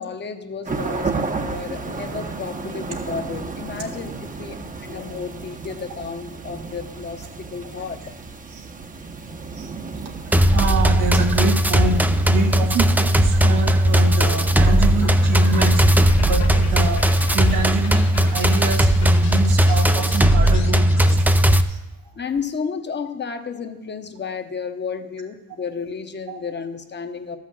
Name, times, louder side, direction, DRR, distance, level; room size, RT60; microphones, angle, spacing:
voice 1, 0.0-8.0 22.2-27.4, left 5 dB, 35° left, 7 dB, 1.0 m, -32 dB
sound 1, 0.6-20.1, right 4 dB, 25° right, 0.9 m, -34 dB
sound 2, 10.3-21.6, right 1 dB, 5° right, 0.5 m, -17 dB
voice 2, 10.3-15.8 16.2-17.1 17.3-21.8 26.3-26.4, right 3 dB, 85° right, 2 dB, 1.7 m, -26 dB
sound 3, 14.2-21.2, left 7 dB, 65° left, 1.0 m, -40 dB
12.5 x 5.8 x 7.7 m, 1.0 s
cardioid pair, 90°, 30 cm